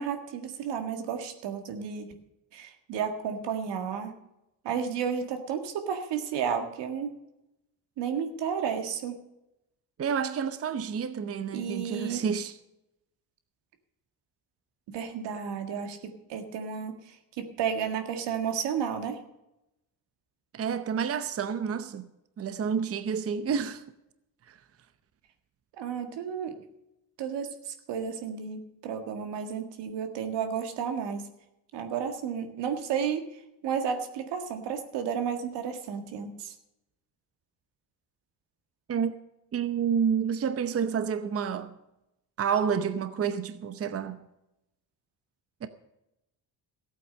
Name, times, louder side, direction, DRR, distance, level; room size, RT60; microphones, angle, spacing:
voice 1, 0.0-2.1 2.5-4.1 4.6-7.1 8.0-9.2 11.5-12.2 14.9-16.0 16.3-17.0 17.4-19.2 25.8-26.5 27.2-31.3 31.7-33.2 33.6-36.5, right 7 dB, 85° right, 1.8 m, -32 dB
voice 2, 10.0-12.6 20.5-22.1 22.4-23.8 38.9-39.1 39.5-41.7 42.4-44.2 45.6-45.7, right 7 dB, 35° right, 0.8 m, -29 dB
14.5 x 8.6 x 6.5 m
cardioid pair, 115°, 41 cm